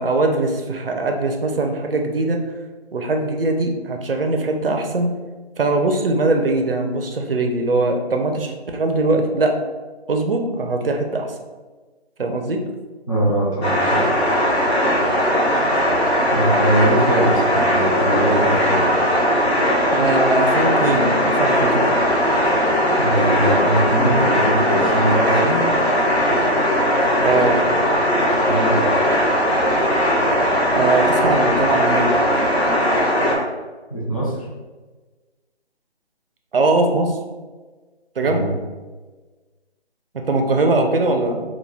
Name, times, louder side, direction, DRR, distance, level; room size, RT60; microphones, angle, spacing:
voice 1, 0.0-2.4 2.9-5.1 5.6-9.6 10.1-11.3 12.2-12.6 19.9-22.0 27.2-27.7 30.7-32.1 36.5-37.2 38.2-38.5 40.3-41.4, right 2 dB, 60° right, 4 dB, 0.4 m, -21 dB
voice 2, 13.1-14.0 16.3-18.8 23.0-25.6 28.5-28.9 33.9-34.4 38.2-38.5, right 1 dB, 35° left, -5 dB, 0.4 m, -21 dB
sound 1, 13.6-33.4, equal, 70° left, 0.8 m, -18 dB
2.2 x 2.1 x 3.2 m, 1.3 s
figure-of-eight pair, 165°, 33 cm